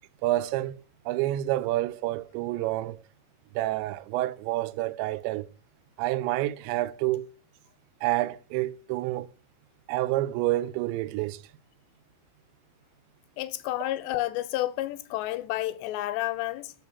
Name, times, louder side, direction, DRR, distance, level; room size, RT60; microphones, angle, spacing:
voice 1, 0.2-0.7 1.1-3.0 3.6-5.5 6.0-7.3 8.0-9.3 9.9-11.4, right 16 dB, 90° right, 2.9 m, -28 dB
voice 2, 13.4-16.7, left 15 dB, 85° left, 2.8 m, -30 dB
6.4 x 6.3 x 6.9 m
omnidirectional pair, 5.0 m